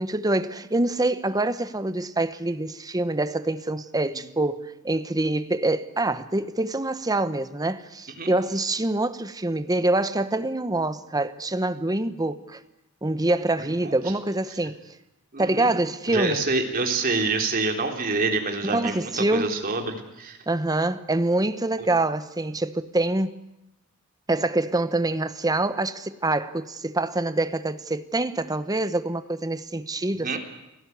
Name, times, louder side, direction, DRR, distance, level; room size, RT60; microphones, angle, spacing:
voice 1, 0.0-12.6 13.0-14.8 15.4-16.4 18.6-19.5 20.5-23.4 24.3-30.4, right 2 dB, 20° right, 1.0 m, -25 dB
voice 2, 15.3-15.7 16.1-20.4 21.8-21.9 30.2-30.4, right 3 dB, 45° right, 3.7 m, -26 dB
29.5 x 17.5 x 9.7 m
head